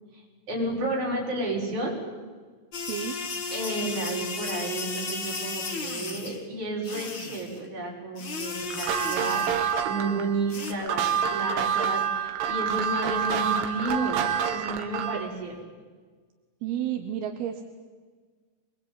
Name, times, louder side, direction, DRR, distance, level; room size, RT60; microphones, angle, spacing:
voice 1, 0.1-2.0 3.5-14.2 14.5-15.6, right 2 dB, 40° right, -2 dB, 7.2 m, -32 dB
sound 1, 2.7-6.4 6.8-7.6 8.2-9.8 10.5-10.7, left 4 dB, 40° left, 1.8 m, -34 dB
voice 2, 2.9-3.2 16.6-17.6, right 11 dB, 70° right, 6 dB, 2.7 m, -31 dB
sound 2, 8.7-15.3, right 7 dB, 85° right, 4.1 m, -27 dB
24.5 x 22.0 x 9.1 m, 1.5 s
omnidirectional pair, 5.4 m